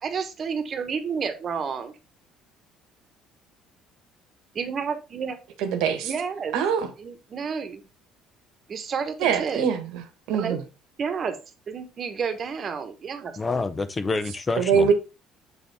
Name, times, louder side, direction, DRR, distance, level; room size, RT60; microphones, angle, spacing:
voice 1, 0.0-2.0 4.5-5.4 6.0-6.6 7.0-7.8 8.7-9.6 10.3-10.6 11.0-11.4 11.7-13.4, right 6 dB, 40° right, 1.2 m, -30 dB
voice 2, 5.6-6.1 6.5-6.9 9.2-9.8 10.3-10.6 14.6-14.9, right 6 dB, 80° right, 1.2 m, -22 dB
voice 3, 13.4-14.9, left 3 dB, 20° left, 0.5 m, -27 dB
7.0 x 4.1 x 3.4 m
cardioid pair, 110°, 0 cm